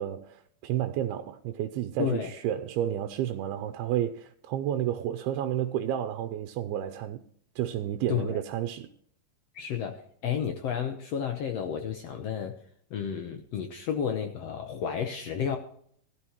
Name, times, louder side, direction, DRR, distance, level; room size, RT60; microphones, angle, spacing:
voice 1, 0.0-7.2 7.6-8.9, right 11 dB, 90° right, 2.6 m, -31 dB
voice 2, 2.0-2.3 8.1-8.4 9.5-12.5 12.9-15.6, left 8 dB, 80° left, 1.4 m, -31 dB
16.0 x 11.5 x 3.0 m
omnidirectional pair, 4.3 m